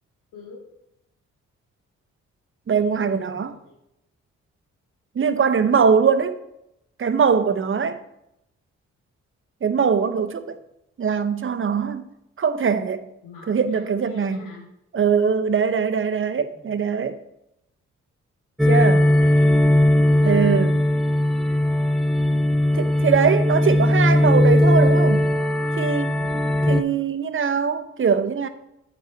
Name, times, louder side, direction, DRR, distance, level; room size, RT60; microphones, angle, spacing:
voice 1, 0.3-0.6 2.8-3.7 13.2-14.6 16.5-16.7 18.8-19.6 26.2-26.6, left 4 dB, 90° left, -2 dB, 2.1 m, -44 dB
voice 2, 2.7-3.5 5.1-6.3 7.0-8.0 9.6-10.6 11.0-12.0 12.4-13.0 13.5-14.5 14.9-17.2 18.7-19.1 20.2-20.8 22.7-25.3 25.8-26.2 26.7-28.5, right 6 dB, 40° right, 10 dB, 0.8 m, -21 dB
sound 1, 18.6-26.8, left 1 dB, ahead, 0.6 m, -18 dB
8.3 x 4.1 x 4.5 m, 0.83 s
supercardioid pair, 50°, 31 cm